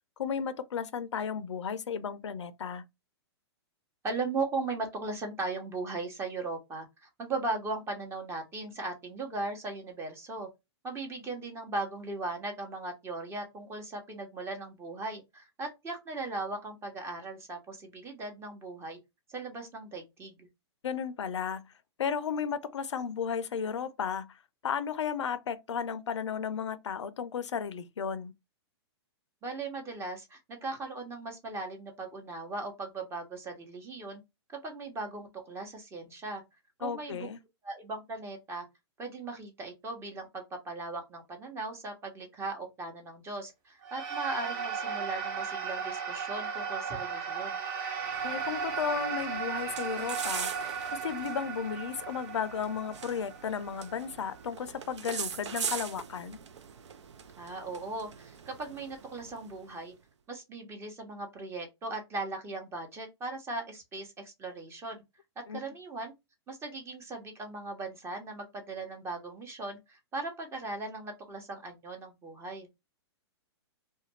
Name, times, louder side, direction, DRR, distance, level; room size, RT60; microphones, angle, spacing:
voice 1, 0.2-2.8 20.8-21.6 22.0-24.3 24.6-28.3 36.8-37.4 48.2-50.5 50.9-56.4 65.5-65.6, left 7 dB, 90° left, 0.4 m, -34 dB
voice 2, 4.0-10.5 10.8-19.0 19.3-20.5 29.4-34.2 34.6-36.4 36.8-37.3 37.6-38.7 39.0-47.6 57.4-59.9 60.3-65.0 65.5-66.1 66.5-72.7, right 3 dB, 15° right, 0.9 m, -38 dB
sound 1, 43.8-54.4, right 6 dB, 45° right, 1.1 m, -36 dB
sound 2, 48.0-59.8, right 7 dB, 85° right, 0.5 m, -42 dB
2.5 x 2.2 x 3.0 m
hypercardioid pair, 130°, 15 cm